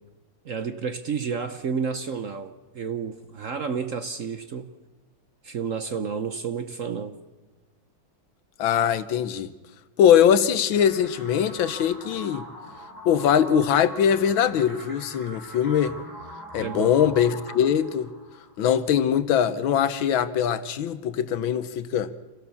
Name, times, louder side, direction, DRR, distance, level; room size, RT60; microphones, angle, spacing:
voice 1, 0.4-4.7 5.4-7.2 16.6-17.0, right 6 dB, 55° right, 0.9 m, -31 dB
voice 2, 8.6-9.5 10.0-12.4 13.0-15.9 16.5-18.1 18.6-22.1, left 9 dB, 80° left, 1.7 m, -22 dB
sound 1, 10.7-18.7, equal, 10° left, 7.7 m, -42 dB
27.0 x 17.0 x 7.0 m
omnidirectional pair, 2.1 m